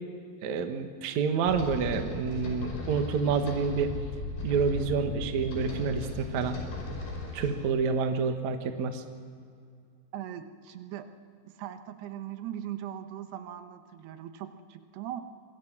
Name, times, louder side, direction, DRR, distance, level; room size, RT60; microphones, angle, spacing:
voice 1, 0.4-3.9 4.4-6.6 7.3-9.0, right 5 dB, 60° right, 6 dB, 2.2 m, -28 dB
sound 1, 1.5-7.5, left 2 dB, 60° left, 7.2 m, -36 dB
voice 2, 10.1-11.1 11.4-15.2, right 11 dB, 75° right, 8 dB, 3.1 m, -40 dB
27.0 x 22.0 x 6.1 m, 2.3 s
omnidirectional pair, 4.8 m